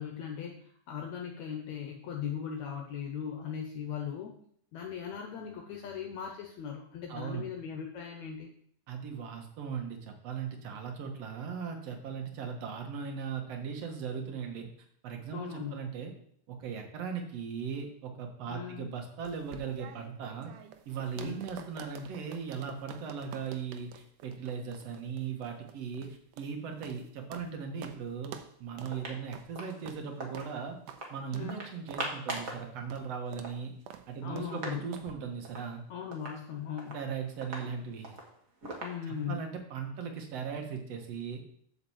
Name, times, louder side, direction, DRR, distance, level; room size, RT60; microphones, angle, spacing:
voice 1, 0.0-4.4 4.7-8.5 15.3-15.8 18.5-18.9 21.2-21.4 31.3-31.6 34.2-34.9 35.9-37.0 38.8-39.5, left 8 dB, 75° left, 2 dB, 2.0 m, -39 dB
voice 2, 7.1-7.5 8.9-14.7 15.0-16.1 16.5-20.5 20.9-30.8 31.1-33.7 34.1-35.8 36.9-38.2 39.1-41.4, right 6 dB, 60° right, 3 dB, 2.3 m, -38 dB
sound 1, 19.2-27.5 27.8-28.0 28.2-28.5 28.8-29.0 29.3-29.5 29.9-30.0 30.3-30.5 30.9-31.0 31.3-31.5 31.9-32.1 32.4-32.5 32.9-33.1 33.3-33.5 33.9-34.1 34.4-34.5 34.9-35.1, right 9 dB, 85° right, 2.2 m, -48 dB
sound 2, 28.9-30.5 30.9-31.1 31.5-32.7 33.0-33.1 33.3-34.8 35.1-35.2 35.4-35.7 36.1-39.4, right 2 dB, 35° right, 1.4 m, -42 dB
7.9 x 5.5 x 7.1 m, 0.65 s
omnidirectional pair, 3.6 m